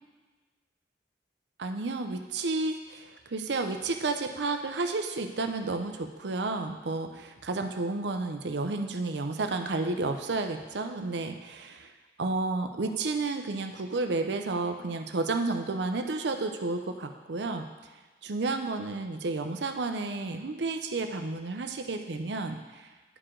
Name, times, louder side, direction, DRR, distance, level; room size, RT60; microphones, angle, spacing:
voice 1, 1.6-11.9 12.2-17.7 18.2-22.9, right 3 dB, 75° right, 6 dB, 0.6 m, -31 dB
9.9 x 4.8 x 3.8 m, 1.3 s
head